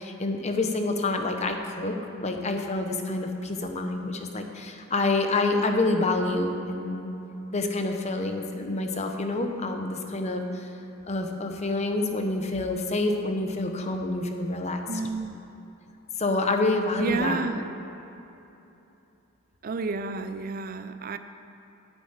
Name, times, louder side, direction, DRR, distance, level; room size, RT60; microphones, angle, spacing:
voice 1, 0.0-7.1 7.5-10.7 11.1-14.8 16.2-17.5, left 2 dB, 35° left, 4 dB, 0.9 m, -27 dB
voice 2, 14.9-15.4 17.0-17.6 19.6-21.2, right 4 dB, 45° right, 10 dB, 0.4 m, -30 dB
9.6 x 7.1 x 8.9 m, 3.0 s
head